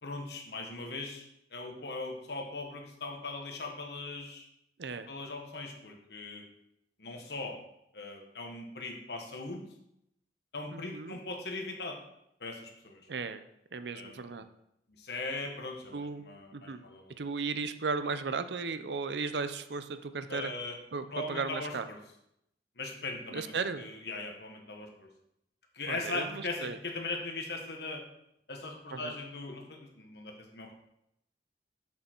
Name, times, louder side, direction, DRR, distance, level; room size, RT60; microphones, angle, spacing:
voice 1, 0.0-4.5 5.1-6.4 7.0-7.6 7.9-9.6 10.5-12.0 12.4-13.0 13.9-14.4 15.0-17.1 20.3-20.8 21.1-22.0 22.8-25.1 25.7-28.0 28.5-30.8, left 3 dB, 70° left, 2 dB, 1.4 m, -39 dB
voice 2, 10.7-11.2 13.1-13.4 13.7-14.5 15.9-16.2 16.5-16.8 17.2-20.5 20.9-21.9 23.3-23.8 25.9-26.8 28.9-29.1, right 4 dB, 75° right, 11 dB, 0.6 m, -35 dB
6.9 x 6.8 x 4.5 m, 0.79 s
head